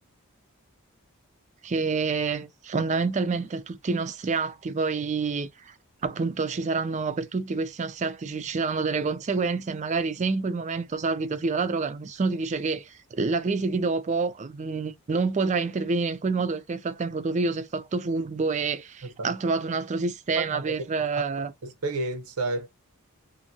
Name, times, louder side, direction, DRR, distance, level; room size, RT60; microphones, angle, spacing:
voice 1, 1.6-5.7 6.0-21.5, right 4 dB, 30° right, 0.4 m, -28 dB
voice 2, 19.0-19.3 20.3-20.6 21.2-21.3 21.6-22.7, right 2 dB, 85° right, 0.8 m, -31 dB
2.6 x 2.6 x 2.7 m
head